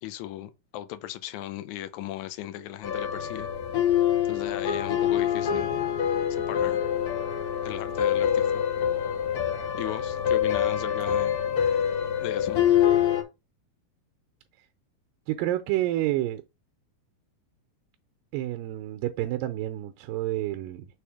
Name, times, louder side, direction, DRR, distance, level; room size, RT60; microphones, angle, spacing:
voice 1, 0.0-3.5 4.3-5.7 6.3-6.8 7.6-8.6 9.7-11.4 12.2-12.6, left 13 dB, 75° left, 1.8 m, -37 dB
sound 1, 2.8-13.2, left 9 dB, 55° left, 1.8 m, -25 dB
voice 2, 15.3-16.4 18.3-20.9, right 15 dB, 80° right, 2.3 m, -29 dB
6.5 x 3.5 x 4.8 m
omnidirectional pair, 4.0 m